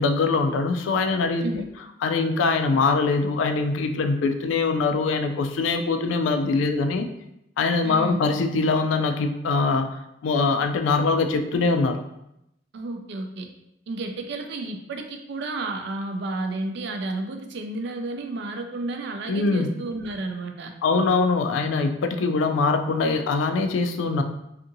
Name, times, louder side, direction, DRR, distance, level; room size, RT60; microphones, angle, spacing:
voice 1, 0.0-1.4 2.0-7.1 7.6-9.9 10.2-12.0 19.3-19.7 20.8-24.2, left 4 dB, 85° left, 7 dB, 0.3 m, -23 dB
voice 2, 7.8-8.3 12.7-13.5 13.9-20.7, right 2 dB, 65° right, 4 dB, 0.4 m, -32 dB
2.6 x 2.5 x 2.6 m, 0.83 s
head